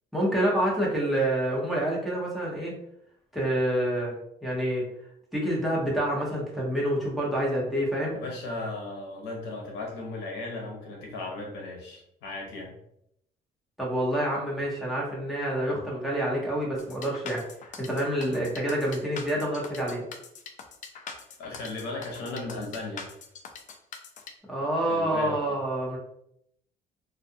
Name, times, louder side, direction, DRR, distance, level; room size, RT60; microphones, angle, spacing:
voice 1, 0.1-2.7 3.3-4.1 4.4-4.8 5.3-8.2 13.8-17.4 17.8-20.0 24.5-26.0, right 1 dB, ahead, -4 dB, 0.9 m, -27 dB
voice 2, 8.1-12.7 21.4-23.0 24.9-25.4, left 2 dB, 85° left, -1 dB, 0.9 m, -36 dB
sound 1, 16.8-24.3, left 5 dB, 50° left, 0.4 m, -43 dB
2.5 x 2.3 x 2.7 m, 0.74 s
cardioid pair, 110°, 17 cm